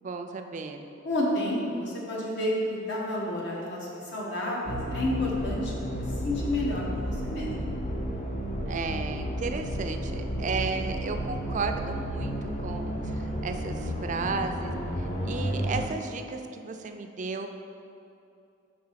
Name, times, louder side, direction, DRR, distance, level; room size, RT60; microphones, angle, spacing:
voice 1, 0.0-0.8 8.7-17.5, right 4 dB, 40° right, 6 dB, 0.4 m, -34 dB
voice 2, 1.0-5.7 6.2-7.7, left 1 dB, 60° left, -4 dB, 1.2 m, -30 dB
sound 1, 4.7-15.9, equal, 40° left, 0.7 m, -32 dB
4.8 x 4.2 x 5.6 m, 2.6 s
head